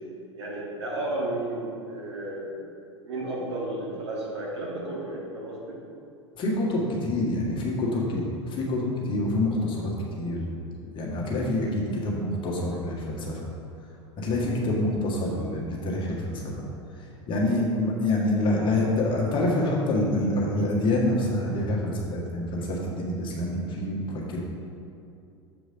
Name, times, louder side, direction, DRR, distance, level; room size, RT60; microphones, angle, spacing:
voice 1, 0.3-2.6 3.0-5.8, right 1 dB, 65° right, -4 dB, 1.8 m, -33 dB
voice 2, 6.4-8.2 8.5-9.9 10.2-10.4 10.9-13.4 14.2-16.5 17.3-24.4, left 1 dB, 30° left, -3 dB, 1.7 m, -26 dB
7.2 x 5.0 x 5.1 m, 2.6 s
figure-of-eight pair, 80°, 16 cm